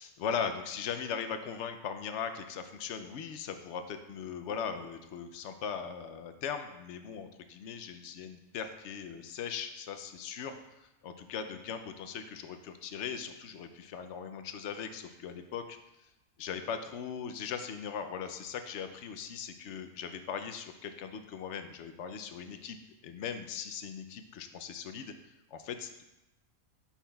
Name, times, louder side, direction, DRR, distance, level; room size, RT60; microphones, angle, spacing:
voice 1, 0.0-15.8 16.4-22.8 23.0-25.1 25.5-26.0, left 7 dB, 70° left, 8 dB, 0.8 m, -39 dB
8.3 x 5.9 x 2.3 m, 0.96 s
omnidirectional pair, 1.4 m